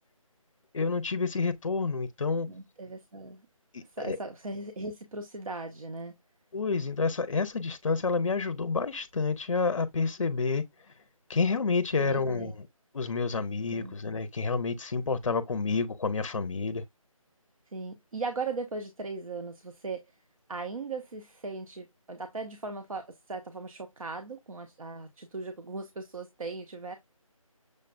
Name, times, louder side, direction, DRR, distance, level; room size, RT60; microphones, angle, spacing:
voice 1, 0.7-2.5 3.7-4.2 6.5-10.6 11.3-12.5 12.9-16.8, left 4 dB, 60° left, 0.5 m, -29 dB
voice 2, 2.5-3.4 3.9-6.1 12.0-12.5 13.7-13.9 17.7-20.1 20.5-27.0, right 3 dB, 70° right, 0.8 m, -38 dB
6.4 x 2.2 x 2.5 m
figure-of-eight pair, 170°, 18 cm